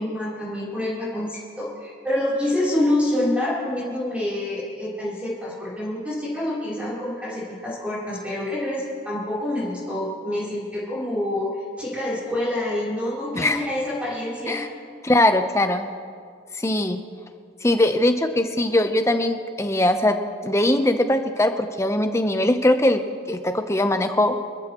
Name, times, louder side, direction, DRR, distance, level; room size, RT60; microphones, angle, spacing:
voice 1, 0.0-14.6, left 1 dB, 5° right, -9 dB, 3.5 m, -27 dB
voice 2, 15.0-15.9 16.6-17.0 17.6-20.2 20.4-24.4, left 1 dB, 15° left, 7 dB, 0.7 m, -21 dB
26.0 x 14.0 x 3.0 m, 2.1 s
head